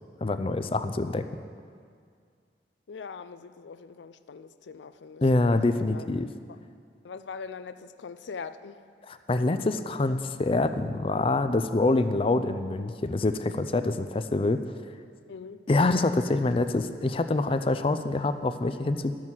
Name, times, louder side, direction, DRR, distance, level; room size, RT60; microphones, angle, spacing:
voice 1, 0.2-1.2 5.2-6.3 9.1-14.6 15.7-19.1, left 2 dB, 30° left, 10 dB, 0.4 m, -25 dB
voice 2, 2.9-5.2 5.9-6.1 7.0-8.8 15.3-15.6, left 5 dB, 90° left, 13 dB, 0.4 m, -41 dB
12.0 x 6.2 x 7.4 m, 2.2 s
head